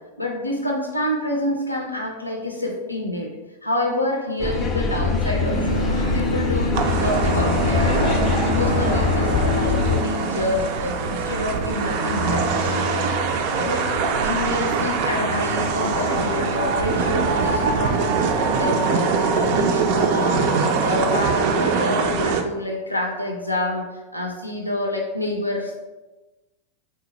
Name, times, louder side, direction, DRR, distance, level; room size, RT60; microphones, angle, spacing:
voice 1, 0.2-3.3 3.6-13.2 13.6-13.8 14.2-18.0 18.6-23.8 24.1-25.7, left 1 dB, 85° left, 0 dB, 0.5 m, -27 dB
sound 1, 4.4-10.0, left 4 dB, 20° left, 0.5 m, -23 dB
sound 2, 5.4-21.2, equal, 80° right, 0.8 m, -30 dB
sound 3, 6.7-22.4, right 5 dB, 45° right, 0.3 m, -23 dB
3.9 x 2.1 x 4.0 m, 1.1 s
figure-of-eight pair, 90°, 0 cm